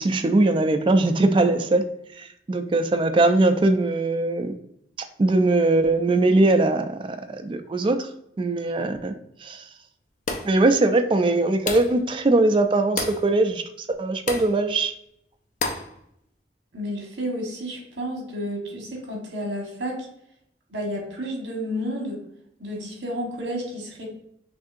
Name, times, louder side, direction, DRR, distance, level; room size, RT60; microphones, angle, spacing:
voice 1, 0.0-4.5 5.2-8.1 8.4-9.1 9.4-9.6 10.4-13.6 14.0-14.9, right 2 dB, 30° right, 7 dB, 0.3 m, -21 dB
sound 1, 10.3-10.6 11.7-12.0 13.0-13.3 14.3-14.5 15.6-15.9, left 3 dB, 45° left, 0.5 m, -29 dB
voice 2, 16.7-20.1 20.7-22.2 22.6-24.1, equal, 70° right, 0 dB, 1.3 m, -31 dB
6.0 x 2.7 x 2.5 m, 0.75 s
head